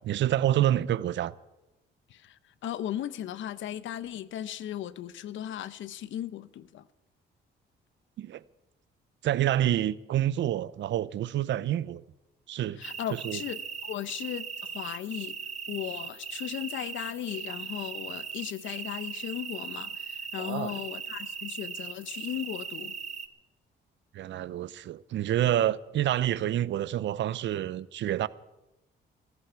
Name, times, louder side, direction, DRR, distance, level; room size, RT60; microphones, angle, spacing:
voice 1, 0.0-1.3 8.2-8.4 9.2-12.0 12.5-12.8 13.1-13.4 20.4-20.8 24.1-28.3, right 12 dB, 70° right, 0.6 m, -28 dB
voice 2, 2.1-6.8 12.8-15.4 15.7-23.0, left 11 dB, 75° left, 0.8 m, -37 dB
sound 1, 12.8-23.3, right 6 dB, 35° right, 1.3 m, -39 dB
21.5 x 14.0 x 4.6 m
cardioid pair, 90°, 20 cm